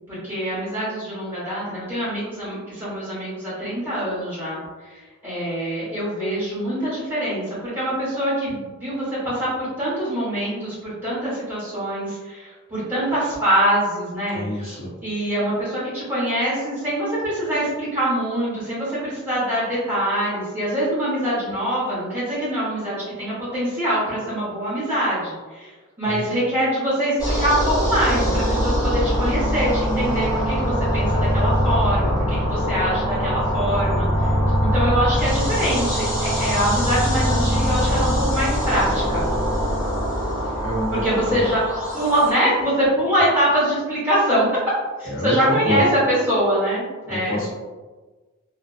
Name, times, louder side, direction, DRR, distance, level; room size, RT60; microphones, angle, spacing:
voice 1, 0.1-34.3 34.6-39.3 40.9-41.6 41.9-44.5 45.0-47.4, right 1 dB, 10° right, -10 dB, 1.2 m, -24 dB
voice 2, 14.3-14.9 26.0-26.2 40.6-41.5 45.0-45.8 47.1-47.5, left 1 dB, 60° left, -7 dB, 0.8 m, -27 dB
sound 1, 27.2-42.3, equal, 15° left, 0.7 m, -22 dB
2.5 x 2.2 x 2.4 m, 1.3 s
head